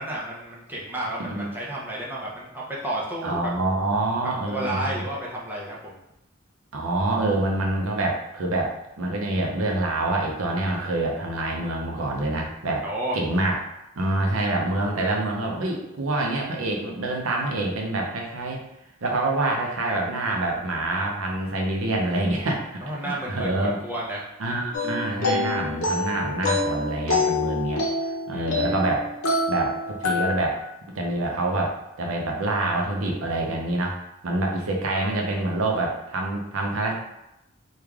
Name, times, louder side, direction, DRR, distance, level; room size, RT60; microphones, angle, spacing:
voice 1, 0.0-3.4 4.5-6.0 12.8-13.2 22.8-24.3 28.3-28.9, right 1 dB, 10° right, -5 dB, 0.6 m, -32 dB
voice 2, 3.2-5.0 6.7-12.8 13.1-13.6 14.0-18.6 19.0-23.8 24.4-27.9 28.3-29.1 29.5-30.6 30.9-34.0 34.2-36.9, right 2 dB, 75° right, 0 dB, 0.6 m, -26 dB
sound 1, 24.7-30.6, left 2 dB, 90° left, 0.7 m, -26 dB
3.2 x 2.4 x 3.5 m, 0.87 s
head